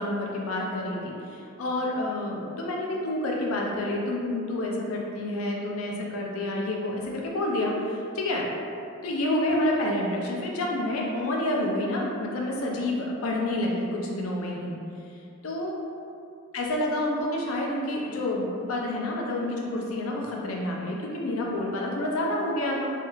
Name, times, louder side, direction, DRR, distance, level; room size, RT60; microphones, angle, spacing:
voice 1, 0.0-8.5 9.0-14.8 15.4-15.7 16.5-22.9, left 1 dB, 85° left, -1 dB, 0.5 m, -28 dB
3.2 x 2.3 x 3.0 m, 2.5 s
head